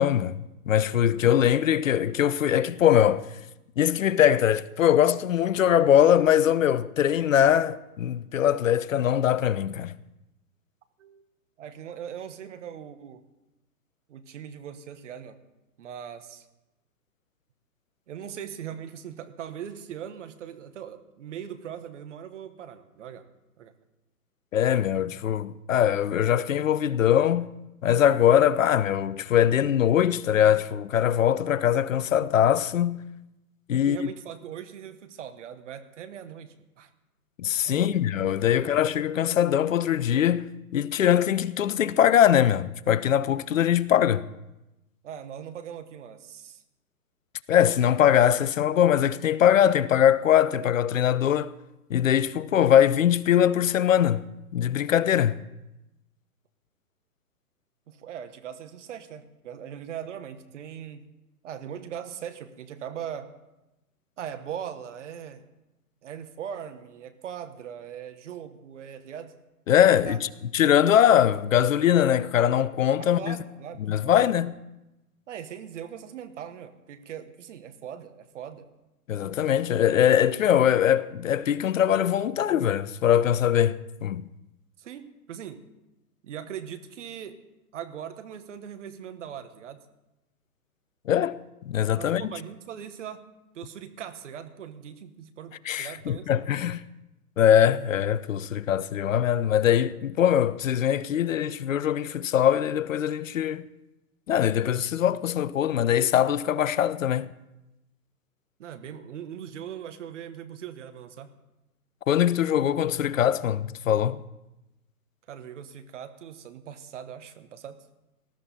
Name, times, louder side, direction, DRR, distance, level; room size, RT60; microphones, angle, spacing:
voice 1, 0.0-3.2 3.8-9.9 24.5-27.5 27.8-33.0 33.7-34.1 37.4-44.3 47.5-51.5 51.9-54.3 54.5-55.4 69.7-73.4 73.9-74.6 79.1-84.2 91.1-91.4 91.7-92.2 95.7-96.8 97.4-103.6 104.3-107.3 112.1-114.2, left 10 dB, 55° left, 0.6 m, -22 dB
voice 2, 11.6-13.2 14.1-15.4 15.8-16.5 18.1-23.3 23.6-23.7 33.7-36.9 37.6-38.0 38.5-38.8 45.0-46.6 57.9-61.1 61.4-63.4 64.2-65.4 66.0-69.3 69.9-70.2 73.0-74.2 75.3-78.7 84.8-85.6 86.2-87.4 87.7-89.8 92.0-93.2 93.5-96.3 108.6-111.3 115.3-117.8, right 9 dB, 50° right, 1.4 m, -40 dB
19.0 x 13.0 x 4.2 m
figure-of-eight pair, 130°, 46 cm